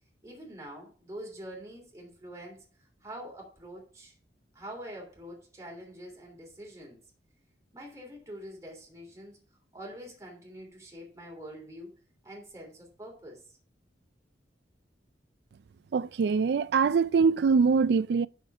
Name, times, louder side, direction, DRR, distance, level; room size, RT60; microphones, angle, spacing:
voice 1, 0.2-4.1 4.5-7.0 7.7-9.4 9.7-11.9 12.2-13.6, equal, 15° right, 2.9 m, -45 dB
voice 2, 15.9-18.3, right 5 dB, 65° right, 0.3 m, -23 dB
8.2 x 6.5 x 3.5 m
head